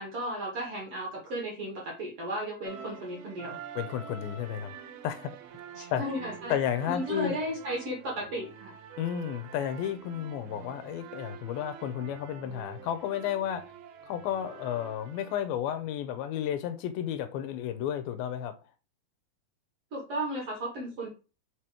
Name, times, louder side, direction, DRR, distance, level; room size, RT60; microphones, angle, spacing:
voice 1, 0.0-3.6 5.8-6.5 6.9-8.7 19.9-21.1, right 1 dB, 50° right, 2.1 m, -34 dB
sound 1, 2.6-15.4, right 8 dB, 85° right, 2.8 m, -46 dB
voice 2, 3.8-4.7 5.0-5.3 5.9-6.0 6.5-7.4 9.0-13.7 14.0-18.6, left 10 dB, 85° left, 2.5 m, -32 dB
6.6 x 3.0 x 4.9 m
omnidirectional pair, 4.3 m